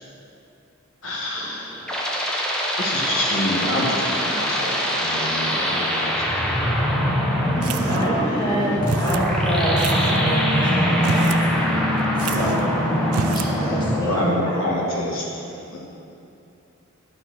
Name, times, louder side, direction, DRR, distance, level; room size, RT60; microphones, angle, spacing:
voice 1, 1.0-1.9 2.8-7.1 7.8-8.5 12.2-12.6 13.6-13.8 14.0-15.3 15.7-15.8, left 1 dB, 60° left, -4 dB, 1.4 m, -28 dB
sound 1, 1.4-15.0, equal, 5° left, 0.8 m, -26 dB
sound 2, 5.5-14.1, equal, 20° right, 1.2 m, -24 dB
voice 2, 7.6-11.3 12.2-13.0 13.6-14.5, equal, 20° left, -6 dB, 1.6 m, -26 dB
sound 3, 7.6-8.3 8.9-9.3 9.8-10.2 10.9-11.5 11.7-11.8 12.2-12.7 13.1-13.5, right 7 dB, 85° right, 0.4 m, -30 dB
10.5 x 4.3 x 6.1 m, 2.7 s
head